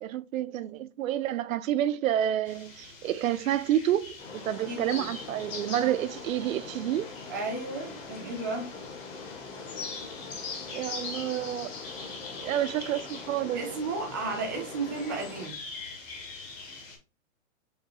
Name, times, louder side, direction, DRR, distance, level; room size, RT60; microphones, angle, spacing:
voice 1, 0.0-7.1 10.7-11.7 12.4-13.6, right 11 dB, 85° right, 0.5 m, -29 dB
sound 1, 2.5-17.0, left 4 dB, 20° left, 0.8 m, -43 dB
sound 2, 4.2-15.5, left 4 dB, 45° left, 1.4 m, -43 dB
voice 2, 4.7-5.1 7.3-8.7 13.5-15.6, right 3 dB, 15° right, 0.4 m, -33 dB
5.0 x 3.1 x 2.7 m
hypercardioid pair, 160°, 40 cm